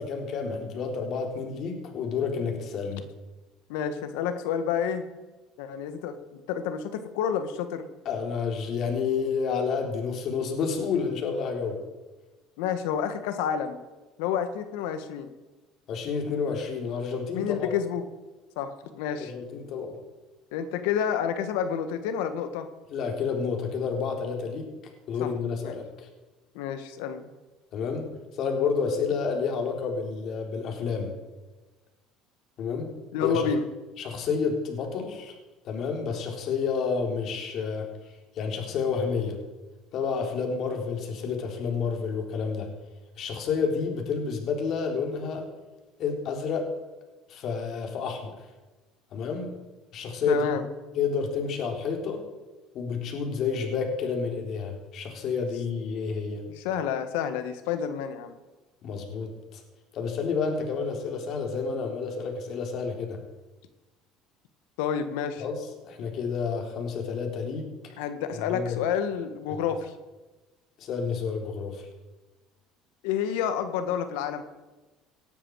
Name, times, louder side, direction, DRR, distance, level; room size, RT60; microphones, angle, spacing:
voice 1, 0.0-3.0 8.1-11.8 15.9-17.7 19.1-20.0 22.9-24.7 25.1-26.1 27.7-31.1 32.6-33.0 33.2-33.5 34.0-35.3 35.6-37.9 38.4-39.4 39.9-42.7 43.2-45.5 46.0-46.7 47.3-48.3 49.1-49.5 49.9-50.5 51.0-52.2 52.7-56.4 58.8-59.6 59.9-63.2 65.4-65.6 65.8-67.7 68.5-68.8 70.8-71.9, left 5 dB, 55° left, 2 dB, 4.0 m, -30 dB
voice 2, 3.7-5.0 5.6-7.9 12.6-13.8 14.2-15.3 17.3-18.0 18.5-19.3 20.5-22.7 25.2-25.3 25.6-25.8 26.5-27.3 33.1-33.6 50.3-50.6 56.6-58.4 64.8-65.4 68.0-69.9 73.0-74.4, left 8 dB, 85° left, 9 dB, 1.6 m, -29 dB
19.0 x 12.5 x 4.8 m, 1.2 s
supercardioid pair, 105°, 0 cm